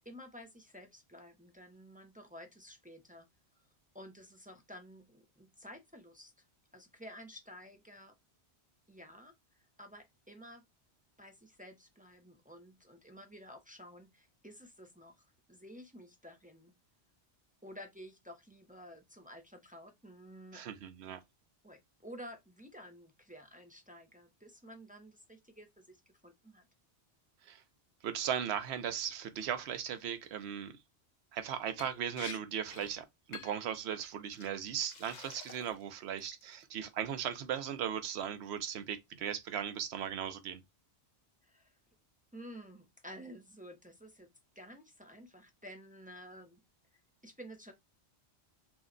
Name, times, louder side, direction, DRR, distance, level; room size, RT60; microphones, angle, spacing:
voice 1, 0.0-3.3 3.9-6.3 6.7-8.1 8.9-10.6 11.2-16.7 17.6-20.7 21.6-26.7 41.4-41.8 42.3-44.3 44.6-46.6 46.9-47.7, equal, 15° right, 0.3 m, -52 dB
voice 2, 20.5-21.2 27.5-27.6 28.0-30.7 31.3-40.6, right 9 dB, 75° right, 0.9 m, -37 dB
Liquid, 31.8-31.9 32.2-32.4 32.7-32.9 33.3-33.7 34.3-34.5 34.9-35.8 36.2-36.6, left 6 dB, 55° left, 0.5 m, -48 dB
2.7 x 2.1 x 3.7 m
omnidirectional pair, 1.1 m